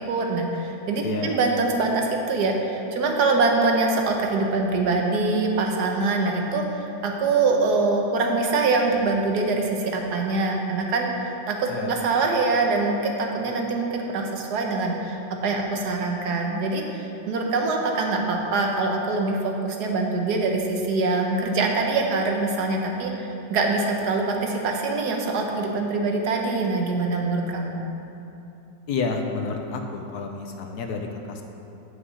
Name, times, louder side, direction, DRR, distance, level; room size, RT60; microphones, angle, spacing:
voice 1, 0.0-27.8, right 3 dB, 65° right, 2 dB, 1.4 m, -24 dB
voice 2, 1.0-1.4 11.7-12.0 28.9-31.4, left 4 dB, 70° left, 4 dB, 1.1 m, -30 dB
8.2 x 5.7 x 6.3 m, 2.9 s
omnidirectional pair, 1.9 m